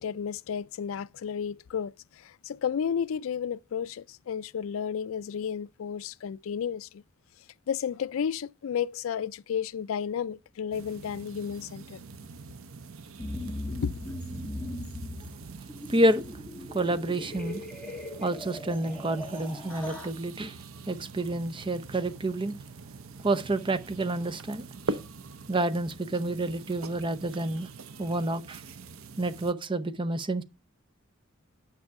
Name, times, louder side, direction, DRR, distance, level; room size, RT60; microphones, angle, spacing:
voice 1, 0.0-7.0 7.7-12.0 13.7-14.1, left 7 dB, 75° left, 0.4 m, -32 dB
sound 1, 10.7-29.5, right 3 dB, 75° right, 0.7 m, -43 dB
sound 2, 13.2-20.1, left 1 dB, 5° left, 2.1 m, -39 dB
voice 2, 15.9-16.2 16.7-17.6 18.2-20.6 20.9-22.5 23.2-25.0 25.5-27.7 28.0-28.6 29.2-30.4, right 1 dB, 25° right, 0.7 m, -29 dB
9.6 x 6.2 x 4.7 m
head